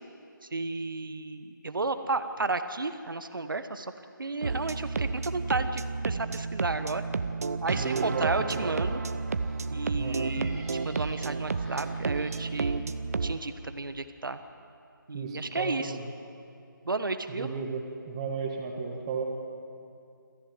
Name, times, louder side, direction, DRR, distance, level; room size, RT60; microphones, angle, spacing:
voice 1, 0.4-3.9 4.2-7.0 7.6-9.0 9.7-13.0 13.2-14.4 15.1-15.9 16.8-17.5, right 3 dB, 75° right, 10 dB, 1.3 m, -32 dB
sound 1, 4.4-13.4, right 4 dB, 45° right, 0.8 m, -31 dB
sound 2, 7.4-13.5, equal, 5° left, 2.1 m, -53 dB
voice 2, 7.7-8.7 9.9-10.5 15.1-16.0 17.3-19.2, right 5 dB, 15° right, 2 dB, 1.9 m, -34 dB
27.0 x 14.5 x 8.0 m, 2.5 s
figure-of-eight pair, 165°, 11 cm